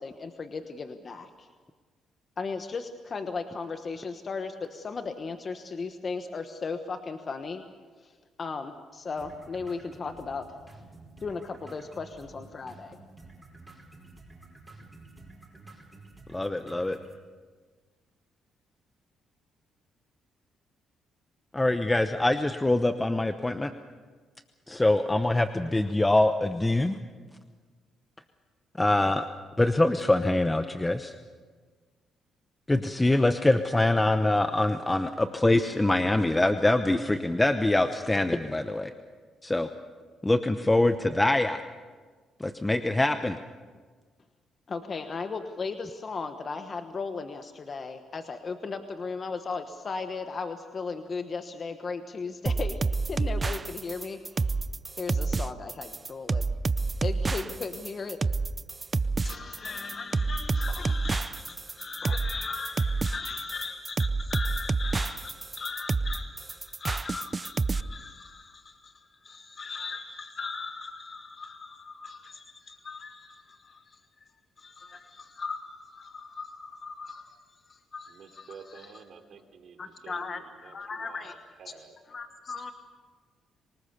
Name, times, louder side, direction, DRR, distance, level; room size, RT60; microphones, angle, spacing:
voice 1, 0.0-1.5 2.4-7.6 8.0-10.4 11.2-13.0 44.7-54.6 55.0-56.5 57.0-58.2 59.2-74.3 74.6-78.9 79.8-81.3 82.1-82.7, left 4 dB, 40° left, 7 dB, 1.2 m, -37 dB
sound 1, 9.2-17.2, right 2 dB, 10° right, 5.2 m, -50 dB
voice 2, 16.3-17.0 21.5-23.7 24.7-27.0 28.8-29.2 29.6-31.1 32.7-38.9 39.4-39.7 40.2-41.6 42.4-43.4, left 2 dB, 15° left, 9 dB, 0.9 m, -24 dB
sound 2, 52.5-67.8, right 4 dB, 30° right, 0.6 m, -28 dB
voice 3, 78.1-81.3 81.6-81.9, right 6 dB, 60° right, 5 dB, 3.2 m, -49 dB
25.5 x 19.0 x 6.8 m, 1.5 s
cardioid pair, 90°, 0 cm